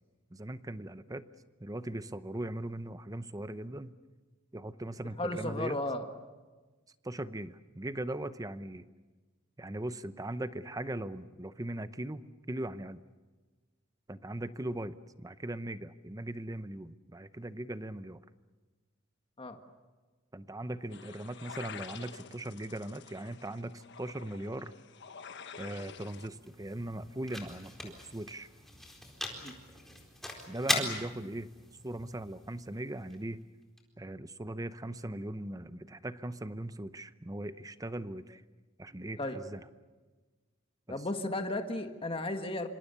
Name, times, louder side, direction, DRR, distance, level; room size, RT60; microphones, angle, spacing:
voice 1, 0.3-1.3 1.6-3.9 4.5-5.8 7.0-8.9 9.6-13.0 14.1-18.2 20.3-24.7 25.6-28.5 30.5-31.5 31.8-33.4 34.0-38.4 38.8-39.6 40.9-41.0, right 1 dB, 15° right, 13 dB, 0.8 m, -39 dB
voice 2, 5.2-6.0 19.4-19.6 29.3-29.5 39.2-39.4 40.9-42.7, left 1 dB, 25° left, 6 dB, 1.7 m, -34 dB
sound 1, 20.9-26.3, left 6 dB, 60° left, 1.3 m, -48 dB
sound 2, 25.7-33.8, left 1 dB, ahead, 4.1 m, -40 dB
26.5 x 26.0 x 7.0 m, 1.3 s
head